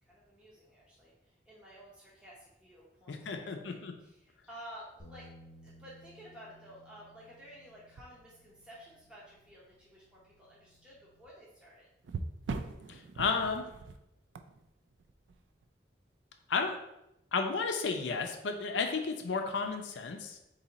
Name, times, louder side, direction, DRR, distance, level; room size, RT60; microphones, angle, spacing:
voice 1, 0.0-1.1 1.5-5.3 5.6-11.9, equal, 5° right, -7 dB, 0.7 m, -53 dB
sound 1, 3.0-3.4 4.9-5.0 5.7-5.8 8.0-8.8 9.3-9.5 12.0-15.7 19.5-19.7, right 3 dB, 85° right, 0.4 m, -42 dB
voice 2, 3.1-3.9 12.9-13.7 16.5-16.8 17.3-20.4, left 4 dB, 85° left, 4 dB, 0.5 m, -33 dB
Bass guitar, 5.0-11.2, left 1 dB, 35° left, 0.8 m, -59 dB
4.1 x 2.7 x 3.9 m, 0.86 s
head